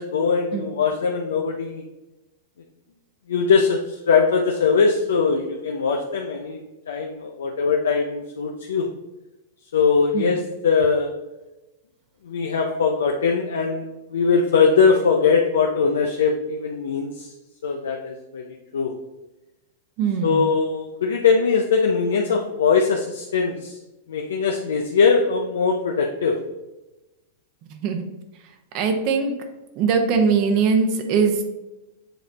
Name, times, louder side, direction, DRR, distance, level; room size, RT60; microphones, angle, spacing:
voice 1, 0.0-1.8 3.3-8.9 9.7-11.1 12.2-13.8 14.1-17.3 17.6-18.5 18.7-18.9 20.2-23.8 24.1-26.4, left 5 dB, 75° left, 2 dB, 0.6 m, -21 dB
voice 2, 20.0-20.5 27.7-28.0 28.7-29.3 29.7-31.4, right 5 dB, 50° right, 5 dB, 1.0 m, -21 dB
7.7 x 3.3 x 4.0 m, 1.0 s
hypercardioid pair, 105°, 0 cm